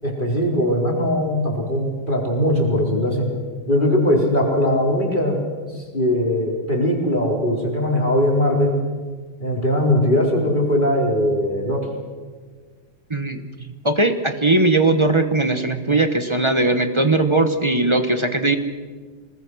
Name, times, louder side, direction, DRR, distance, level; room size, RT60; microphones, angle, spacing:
voice 1, 0.0-3.3 3.7-5.4 5.7-8.8 9.4-11.9, left 1 dB, 20° left, -1 dB, 4.3 m, -20 dB
voice 2, 13.1-13.4 13.8-18.6, right 2 dB, 25° right, 8 dB, 0.6 m, -19 dB
26.5 x 19.5 x 6.3 m, 1.5 s
omnidirectional pair, 2.4 m